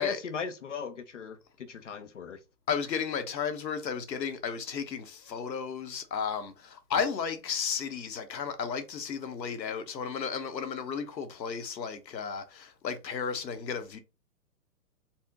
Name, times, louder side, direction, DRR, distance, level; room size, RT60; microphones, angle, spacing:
voice 1, 0.0-2.4, left 6 dB, 50° left, 0.5 m, -38 dB
voice 2, 2.7-14.0, left 6 dB, 90° left, 1.1 m, -33 dB
4.3 x 2.1 x 3.4 m
hypercardioid pair, 165°, 49 cm